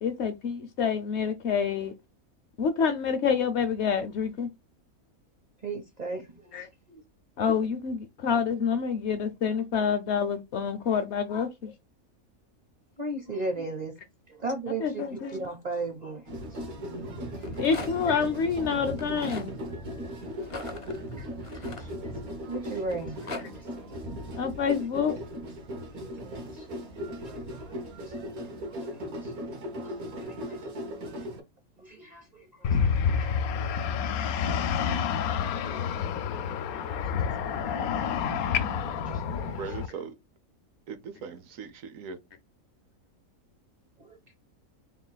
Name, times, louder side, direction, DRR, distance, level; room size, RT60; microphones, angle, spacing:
voice 1, 0.0-1.9 2.6-4.5 6.5-6.7 7.4-11.7 14.8-15.5 17.6-19.6 24.4-25.2, left 6 dB, 65° left, 0.8 m, -27 dB
voice 2, 5.6-6.5 6.9-7.0 13.0-14.0 14.3-16.2 16.5-16.9 17.4-17.7 21.2-23.7 25.9-26.7 27.2-27.7 28.0-28.5 28.8-29.5 29.8-31.3 31.8-33.3 34.4-36.1 36.7-37.4 37.7-40.1 44.0-44.2, right 3 dB, 45° right, 0.6 m, -39 dB
sound 1, 16.3-31.4, equal, 90° right, 1.6 m, -38 dB
Rattle, 17.2-18.2 18.9-19.5 20.4-22.4 22.9-23.4, left 3 dB, 45° left, 0.4 m, -40 dB
sound 2, 32.6-39.9, left 7 dB, 85° left, 1.1 m, -28 dB
voice 3, 39.5-40.1 40.9-42.2, right 6 dB, 70° right, 1.0 m, -39 dB
3.7 x 2.3 x 3.9 m
omnidirectional pair, 1.5 m